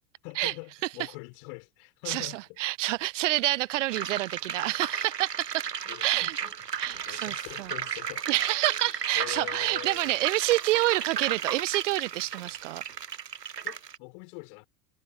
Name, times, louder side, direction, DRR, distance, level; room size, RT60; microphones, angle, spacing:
voice 1, 0.2-2.6 3.5-3.6 5.8-8.3 8.8-10.1 13.6-14.7, left 40 dB or more, 45° left, 5.9 m, -43 dB
voice 2, 2.1-5.7 6.0-6.4 6.8-7.7 8.3-12.8, right 18 dB, 50° right, 0.8 m, -28 dB
sound 1, 3.9-14.0, right 7 dB, 85° right, 0.7 m, -34 dB
figure-of-eight pair, 85°, 48 cm